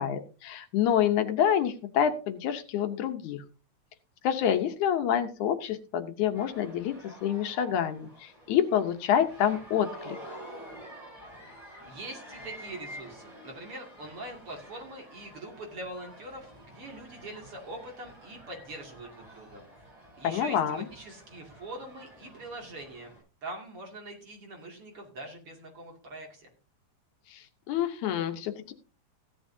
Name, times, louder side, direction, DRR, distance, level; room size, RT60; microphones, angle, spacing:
voice 1, 0.0-3.4 4.2-6.9 7.2-10.2 20.2-20.9 27.3-28.7, left 9 dB, 80° left, 8 dB, 2.4 m, -27 dB
sound 1, 6.3-23.2, equal, 10° right, 6.8 m, -49 dB
voice 2, 11.8-19.7 19.9-23.1 23.4-26.5, right 1 dB, 50° right, 1 dB, 3.3 m, -43 dB
16.0 x 11.0 x 2.7 m, 0.34 s
omnidirectional pair, 3.4 m